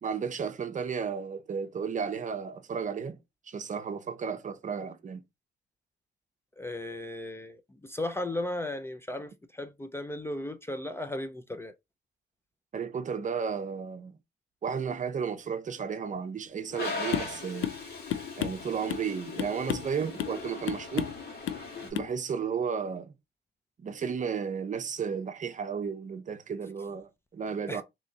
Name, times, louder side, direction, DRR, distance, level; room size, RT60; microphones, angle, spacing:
voice 1, 0.0-3.2 3.5-5.2 12.7-14.2 14.6-17.7 18.4-21.1 21.8-23.1 23.8-27.8, right 6 dB, 40° right, 0.7 m, -33 dB
voice 2, 6.6-11.7 27.7-27.8, left 1 dB, 10° left, 0.5 m, -36 dB
Toilet flush, 16.7-21.9, left 3 dB, 55° left, 1.8 m, -39 dB
sound 1, 17.1-17.4 17.6-17.8 18.1-19.1 19.4-19.9 20.2-20.4 20.7-21.2 21.5-21.7 21.9-22.1, left 11 dB, 80° left, 0.5 m, -32 dB
3.7 x 3.0 x 2.7 m
cardioid pair, 90°, 20 cm